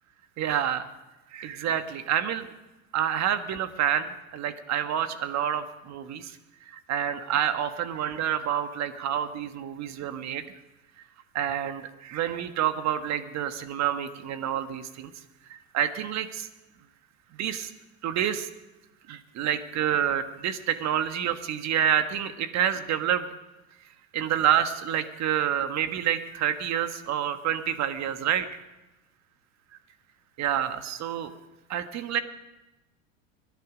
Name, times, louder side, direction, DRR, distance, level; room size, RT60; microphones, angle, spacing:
voice 1, 0.4-0.9 1.3-2.5 2.9-6.4 6.7-10.4 11.3-15.1 15.5-16.5 17.4-17.7 18.0-18.5 19.1-23.3 24.1-28.5 30.4-31.3 31.7-32.2, right 10 dB, 40° right, 10 dB, 1.5 m, -28 dB
24.0 x 11.0 x 5.1 m, 1.0 s
supercardioid pair, 110°, 41 cm